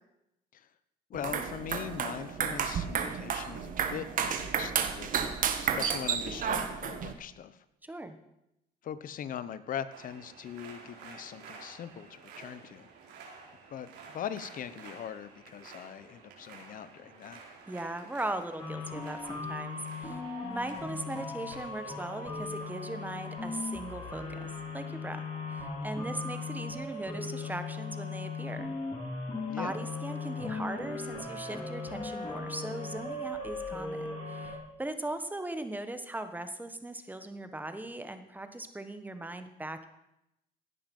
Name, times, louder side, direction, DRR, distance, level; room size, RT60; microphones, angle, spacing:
voice 1, 1.1-5.1 5.6-7.6 8.8-12.9 13.7-17.4 29.5-29.8, left 9 dB, 55° left, 14 dB, 1.1 m, -41 dB
sound 1, 1.1-7.1, right 7 dB, 55° right, 1.7 m, -32 dB
voice 2, 7.8-8.2 17.7-20.2 20.5-25.2 25.5-28.7 29.6-39.9, right 1 dB, 10° right, 9 dB, 1.5 m, -39 dB
sound 2, 9.9-25.4, right 5 dB, 80° right, 4.3 m, -53 dB
sound 3, 18.6-34.6, left 3 dB, 30° left, 5.4 m, -38 dB
17.0 x 11.0 x 5.6 m, 0.87 s
cardioid pair, 110°, 17 cm